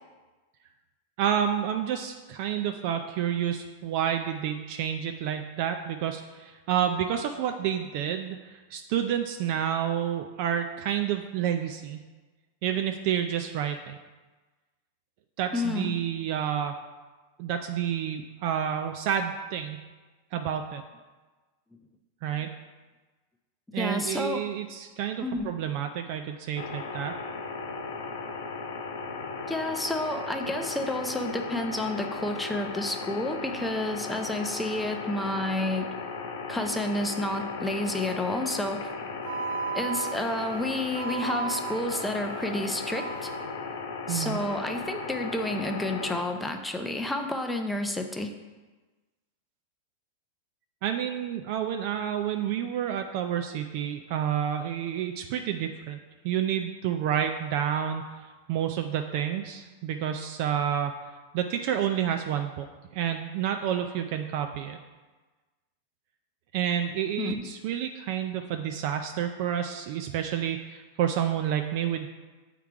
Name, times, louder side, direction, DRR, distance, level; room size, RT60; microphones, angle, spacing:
voice 1, 1.2-12.0 12.6-14.0 15.4-16.7 17.4-19.8 20.3-20.8 22.2-22.5 23.7-27.1 44.1-44.4 50.8-56.0 56.2-60.9 61.3-62.7 62.9-64.8 66.5-72.1, right 9 dB, 50° right, 6 dB, 0.4 m, -29 dB
voice 2, 15.5-15.9 23.7-24.4 25.2-25.5 29.5-35.9 36.5-38.9 39.7-43.3 44.1-48.3 67.2-67.4, left 1 dB, 5° left, 5 dB, 0.5 m, -30 dB
sound 1, 26.6-46.2, left 4 dB, 80° left, 0.8 m, -36 dB
Wind instrument woodwind instrument, 39.2-43.4, right 5 dB, 80° right, 1.5 m, -36 dB
7.0 x 3.7 x 4.6 m, 1.3 s
supercardioid pair, 145°, 0 cm